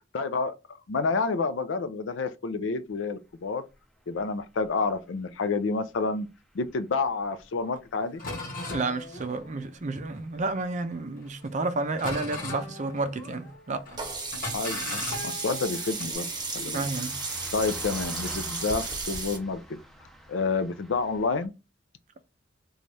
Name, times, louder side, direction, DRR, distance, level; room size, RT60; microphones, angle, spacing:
voice 1, 0.1-0.5 0.9-3.7 4.1-6.3 6.5-8.2 14.5-16.3 16.5-16.9 17.5-19.6 20.3-21.5, left 4 dB, 75° left, 0.5 m, -29 dB
sound 1, 2.9-21.5, right 1 dB, ahead, 0.7 m, -49 dB
sound 2, 7.8-7.9 8.2-10.7 11.2-11.6 12.0-13.6 13.9-14.0 14.3-16.1, left 2 dB, 50° left, 1.2 m, -38 dB
voice 2, 8.7-13.9 16.7-17.2, right 3 dB, 40° right, 0.5 m, -31 dB
Sink (filling or washing), 14.0-19.4, right 3 dB, 20° right, 1.0 m, -34 dB
4.0 x 2.3 x 3.2 m
head